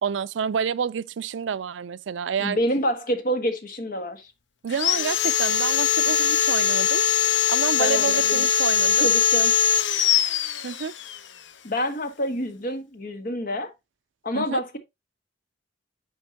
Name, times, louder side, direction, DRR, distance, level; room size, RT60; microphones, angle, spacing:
voice 1, 0.0-2.6 4.6-9.2 10.6-10.9 14.3-14.6, right 7 dB, 80° right, 0.4 m, -29 dB
voice 2, 2.4-4.3 7.8-8.5 9.0-9.5 11.6-13.7 14.2-14.8, equal, 50° left, 1.6 m, -27 dB
Sawing, 4.7-11.2, left 9 dB, 70° left, 0.7 m, -21 dB
10.0 x 5.2 x 2.9 m
head